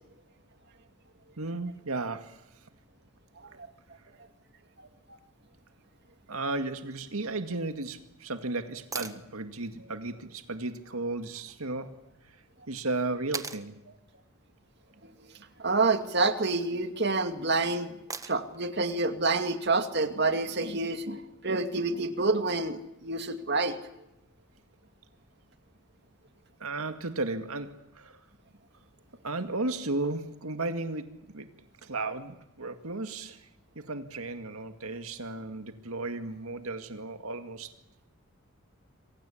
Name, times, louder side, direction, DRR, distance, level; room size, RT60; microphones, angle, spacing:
voice 1, 1.4-2.4 6.3-12.0 12.3-12.4 12.7-13.8 26.6-28.2 29.2-31.5 31.8-33.5 33.8-37.7, right 2 dB, 85° right, 2.1 m, -34 dB
sound 1, 8.9-9.2 11.5-11.6 13.3-13.7 15.7-16.1 18.1-18.6 20.7-20.8, right 4 dB, 15° right, 1.5 m, -38 dB
voice 2, 15.6-17.9 18.3-23.7, right 3 dB, 50° right, 2.4 m, -28 dB
28.0 x 24.0 x 8.6 m
head